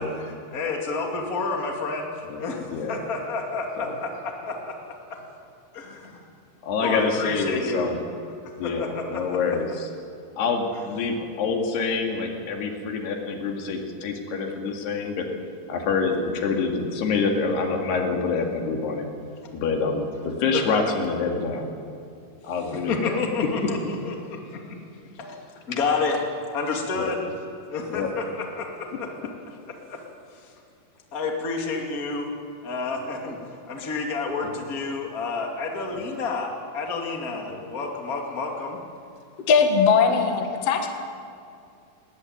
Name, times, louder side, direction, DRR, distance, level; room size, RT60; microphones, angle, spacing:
voice 1, 0.0-4.9 5.7-6.2 6.8-7.9 8.6-9.4 22.7-23.8 24.0-24.4 24.7-24.8 25.2-25.4 25.7-26.2 26.5-27.2 27.7-29.1 29.9-30.0 30.4-30.5 31.1-32.3 32.6-33.4 33.7-38.8, left 4 dB, 25° left, 1 dB, 2.4 m, -29 dB
voice 2, 6.6-8.0 8.6-9.9 10.4-15.3 15.7-19.1 19.5-21.7 22.4-23.2 23.6-23.7 26.9-27.1 27.9-28.1 37.5-37.6, left 4 dB, 80° left, 3 dB, 4.3 m, -26 dB
voice 3, 39.5-40.9, left 5 dB, 50° left, 4 dB, 2.3 m, -19 dB
19.5 x 18.5 x 9.4 m, 2.5 s
omnidirectional pair, 4.6 m